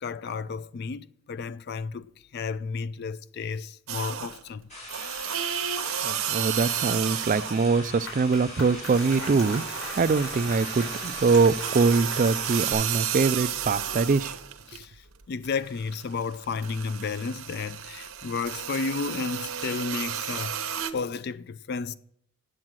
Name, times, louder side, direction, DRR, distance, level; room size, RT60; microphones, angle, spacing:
voice 1, 0.0-2.0 2.3-4.7 14.7-15.0 15.3-20.7 20.9-21.9, left 5 dB, 50° left, 0.3 m, -32 dB
sound 1, 3.9-4.5 4.9-7.8 8.1-14.8 15.2-20.9, right 9 dB, 80° right, 0.9 m, -32 dB
sound 2, 4.7-12.7, left 2 dB, 35° left, 5.4 m, -41 dB
voice 2, 6.0-9.6 10.0-14.4, right 4 dB, 40° right, 0.3 m, -23 dB
Applause, 7.6-13.1, left 1 dB, 75° left, 4.2 m, -41 dB
8.8 x 7.7 x 7.3 m
head